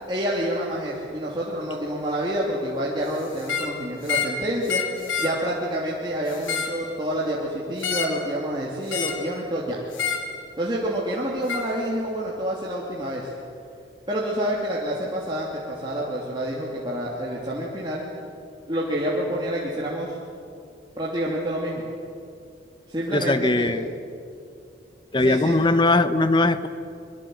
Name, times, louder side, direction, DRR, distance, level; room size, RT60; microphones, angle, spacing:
voice 1, 0.1-9.8 10.6-13.3 14.1-18.0 18.7-20.2 21.0-21.8 22.9-23.7 25.2-25.6, right 1 dB, 25° right, -5 dB, 3.1 m, -28 dB
sound 1, 3.4-3.7 4.0-4.4 4.7-5.4 6.3-6.8 7.8-8.2 8.9-9.3 9.9-10.3 11.5-11.7, left 6 dB, 90° left, 2.9 m, -28 dB
voice 2, 23.1-23.9 25.1-26.7, left 2 dB, 25° left, 12 dB, 1.0 m, -20 dB
24.5 x 24.0 x 7.9 m, 2.4 s
head